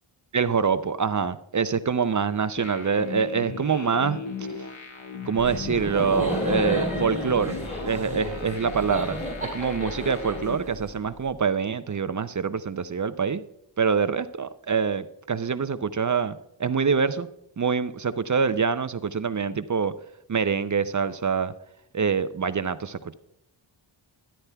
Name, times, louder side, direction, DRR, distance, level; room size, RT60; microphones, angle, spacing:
voice 1, 0.3-4.2 5.2-7.6 7.8-9.2 9.5-13.4 13.8-17.3 17.6-19.9 20.3-21.5 21.9-23.1, right 6 dB, 40° right, 13 dB, 0.5 m, -25 dB
sound 1, 2.6-10.5, left 5 dB, 65° left, 1.2 m, -38 dB
Laughter, 5.4-11.2, equal, 15° left, 2.7 m, -32 dB
13.0 x 10.5 x 2.2 m, 0.79 s
wide cardioid pair, 90°, 49 cm